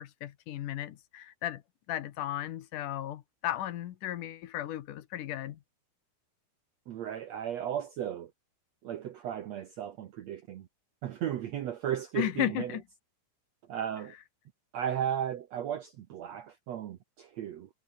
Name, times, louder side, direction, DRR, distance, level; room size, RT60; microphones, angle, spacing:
voice 1, 0.0-1.6 1.9-5.6 12.2-12.8, left 12 dB, 65° left, 2.5 m, -35 dB
voice 2, 6.9-8.3 8.8-10.7 11.0-12.8 13.7-14.1 14.7-17.7, right 10 dB, 70° right, 1.7 m, -35 dB
omnidirectional pair, 4.3 m